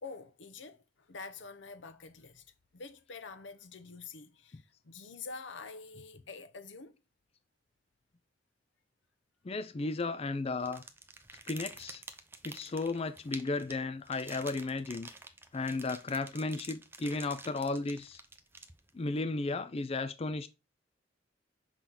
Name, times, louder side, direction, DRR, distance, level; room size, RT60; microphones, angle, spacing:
voice 1, 0.0-2.5 2.7-7.0, left 4 dB, 80° left, 0.7 m, -47 dB
voice 2, 9.4-10.8 11.5-12.0 12.4-15.1 15.5-18.2 18.9-20.5, left 3 dB, 35° left, 0.4 m, -34 dB
sound 1, 10.6-19.1, right 3 dB, 15° right, 0.7 m, -49 dB
6.2 x 3.9 x 4.1 m
head